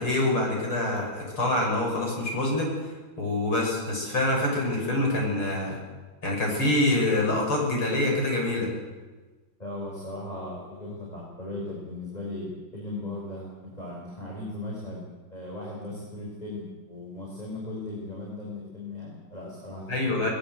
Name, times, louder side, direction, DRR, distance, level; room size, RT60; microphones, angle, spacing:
voice 1, 0.0-2.7 3.2-5.8 6.2-8.7 19.9-20.3, left 2 dB, 85° left, 0 dB, 7.4 m, -25 dB
voice 2, 9.6-15.0 15.3-20.1, left 2 dB, 20° left, -4 dB, 5.8 m, -37 dB
21.0 x 20.5 x 8.1 m, 1.3 s
omnidirectional pair, 2.3 m